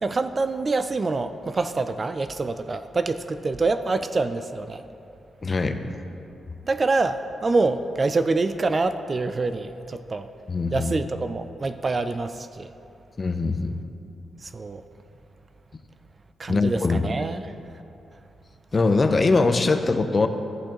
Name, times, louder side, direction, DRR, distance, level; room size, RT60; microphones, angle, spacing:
voice 1, 0.0-4.8 6.6-10.3 10.7-12.7 14.4-14.8 16.4-17.5, right 3 dB, 30° right, 9 dB, 0.3 m, -26 dB
voice 2, 5.4-5.8 10.5-10.9 13.2-13.8 16.5-17.1 18.7-20.3, left 3 dB, 30° left, 8 dB, 0.6 m, -22 dB
14.5 x 8.8 x 3.0 m, 2.8 s
cardioid pair, 115°, 0 cm